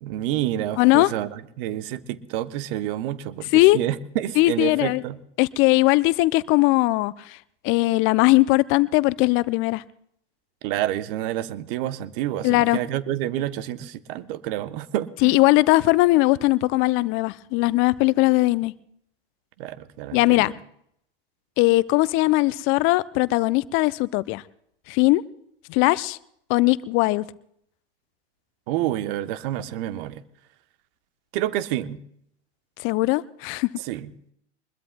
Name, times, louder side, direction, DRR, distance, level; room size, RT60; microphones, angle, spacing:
voice 1, 0.0-5.2 10.6-15.4 19.6-20.6 28.7-30.2 31.3-32.0 33.8-34.1, right 13 dB, 50° right, 14 dB, 0.9 m, -28 dB
voice 2, 0.8-1.1 3.5-3.8 4.4-5.0 5.4-7.4 7.6-9.8 12.4-12.8 15.2-18.7 20.1-20.5 21.6-24.4 24.9-25.2 25.7-26.2 26.5-27.2 32.8-33.7, left 21 dB, 40° left, 19 dB, 0.5 m, -19 dB
23.5 x 21.0 x 2.2 m, 0.72 s
hypercardioid pair, 95°, 34 cm